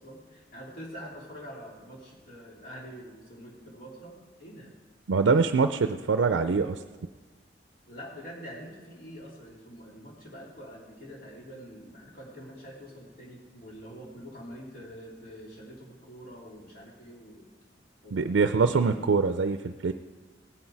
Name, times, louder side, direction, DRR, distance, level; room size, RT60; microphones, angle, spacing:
voice 1, 0.0-4.7 5.1-5.4 7.9-17.5 18.0-18.9, equal, 50° left, -3 dB, 3.2 m, -45 dB
voice 2, 5.1-6.8 18.1-19.9, right 4 dB, 85° right, 9 dB, 0.5 m, -24 dB
17.0 x 9.6 x 4.6 m, 1.3 s
head